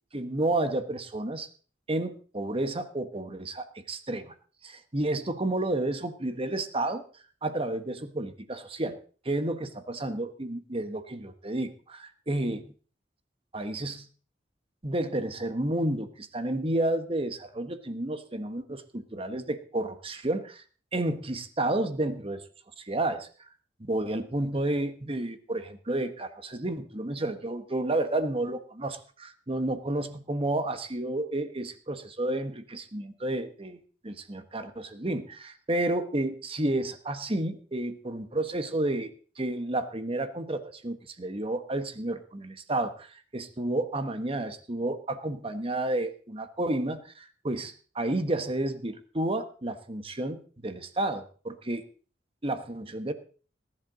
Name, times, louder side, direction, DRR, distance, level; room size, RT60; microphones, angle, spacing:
voice 1, 0.1-1.5 1.9-4.3 4.6-7.0 7.4-9.0 9.2-12.6 13.5-14.1 14.8-20.6 20.9-22.4 22.8-23.3 23.8-51.9 52.4-53.1, right 1 dB, 30° right, 9 dB, 1.4 m, -31 dB
19.5 x 11.0 x 4.0 m, 0.40 s
head